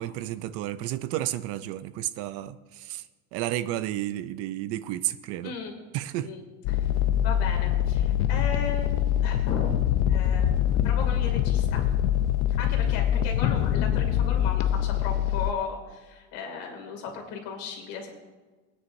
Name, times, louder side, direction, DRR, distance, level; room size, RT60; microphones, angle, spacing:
voice 1, 0.0-3.0 3.3-5.5 5.9-6.3, right 13 dB, 45° right, 14 dB, 0.4 m, -32 dB
voice 2, 5.4-5.7 6.2-6.9 7.2-8.9 9.2-9.8 10.1-10.5 10.8-11.8 12.6-18.1, left 5 dB, 65° left, 2 dB, 2.5 m, -36 dB
sound 1, 6.6-15.5, left 11 dB, 45° left, 0.5 m, -24 dB
21.0 x 9.7 x 2.6 m, 1.3 s
cardioid pair, 175°, 34 cm